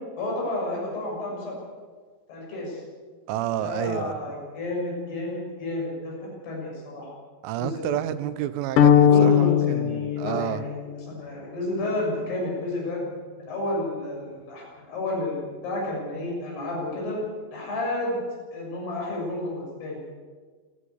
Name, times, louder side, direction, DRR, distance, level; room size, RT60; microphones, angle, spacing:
voice 1, 0.2-1.6 2.3-2.8 3.6-7.1 7.6-8.0 9.1-10.7 11.1-13.0 13.4-17.2 17.5-18.2 18.5-20.1, left 1 dB, 55° left, -3 dB, 8.6 m, -31 dB
voice 2, 3.3-4.2 7.4-10.6, right 12 dB, 90° right, 13 dB, 3.5 m, -30 dB
sound 1, 8.8-11.1, left 9 dB, 80° left, 1.9 m, -19 dB
26.5 x 11.5 x 9.8 m, 1.5 s
omnidirectional pair, 5.5 m